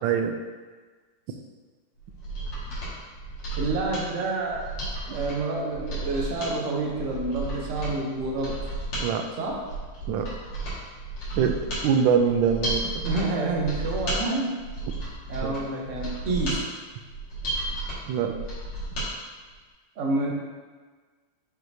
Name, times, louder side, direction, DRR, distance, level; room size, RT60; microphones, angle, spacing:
voice 1, 0.0-0.3 9.0-9.2 10.1-10.3 11.4-13.0 15.4-15.6 18.0-18.4, right 7 dB, 75° right, 6 dB, 1.2 m, -24 dB
Mechanisms, 2.0-19.1 19.4-19.5, right 2 dB, 85° left, 3.0 m, -33 dB
voice 2, 3.6-4.7 5.1-8.6 9.4-9.6 13.0-14.6 15.3-16.6 20.0-20.3, right 2 dB, 45° right, -2 dB, 1.2 m, -28 dB
6.6 x 6.3 x 2.9 m, 1.4 s
omnidirectional pair, 2.3 m